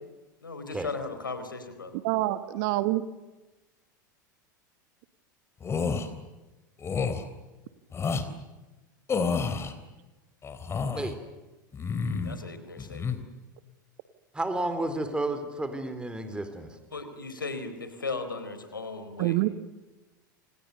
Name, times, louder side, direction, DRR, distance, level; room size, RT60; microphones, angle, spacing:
voice 1, 0.4-2.0 12.2-13.2 16.9-19.4, left 3 dB, 85° left, 9 dB, 4.4 m, -37 dB
voice 2, 2.0-3.0 19.2-19.5, right 17 dB, 55° right, 13 dB, 1.6 m, -26 dB
sound 1, 5.6-6.1 6.8-7.2 7.9-8.3 9.1-9.7 10.4-11.1 11.7-12.4 12.8-13.2, left 5 dB, 25° left, 3.7 m, -29 dB
voice 3, 14.3-16.7, right 2 dB, 10° right, 9 dB, 4.0 m, -31 dB
29.5 x 27.5 x 6.8 m, 1.1 s
figure-of-eight pair, 85°, 11 cm